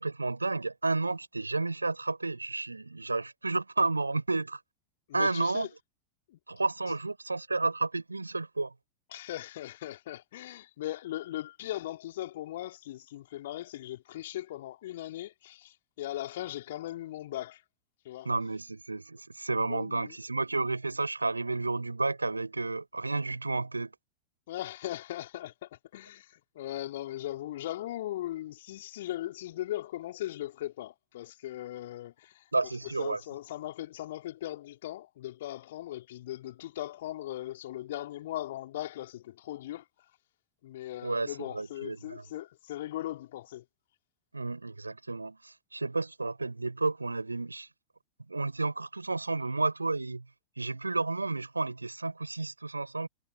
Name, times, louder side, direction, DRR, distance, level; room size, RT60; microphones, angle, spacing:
voice 1, 0.0-4.6 5.1-5.7 6.5-8.7 18.2-23.9 32.5-33.2 41.0-42.2 44.3-47.7 48.3-50.2 50.6-53.1, right 3 dB, 80° right, 4.9 m, -31 dB
voice 2, 5.1-5.7 6.3-6.4 9.1-17.6 18.1-18.3 19.5-20.1 24.5-32.4 33.0-39.8 40.6-43.6, left 14 dB, 55° left, 3.6 m, -39 dB
figure-of-eight pair, 90°, 0 cm